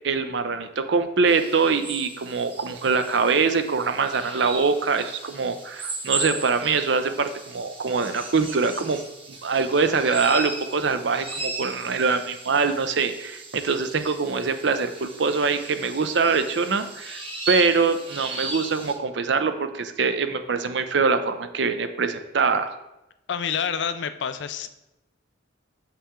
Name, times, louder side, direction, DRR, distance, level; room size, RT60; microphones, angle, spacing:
voice 1, 0.0-9.0 9.4-22.7, right 4 dB, 60° right, 9 dB, 0.5 m, -23 dB
sound 1, 1.3-18.9, right 3 dB, 30° right, 1.0 m, -37 dB
voice 2, 23.3-24.7, left 7 dB, 60° left, 10 dB, 0.4 m, -28 dB
6.9 x 5.7 x 3.7 m, 0.93 s
head